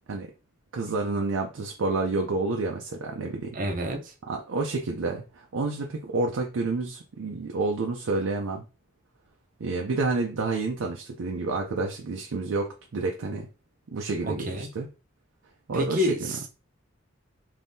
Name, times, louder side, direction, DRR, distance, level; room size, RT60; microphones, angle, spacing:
voice 1, 0.7-3.6 4.3-8.6 9.6-13.5 13.9-14.9 15.7-16.3, right 3 dB, 85° right, 0.5 m, -29 dB
voice 2, 3.5-4.1 14.2-14.7 15.7-16.5, left 1 dB, 40° right, 0.6 m, -29 dB
3.6 x 2.6 x 2.7 m
head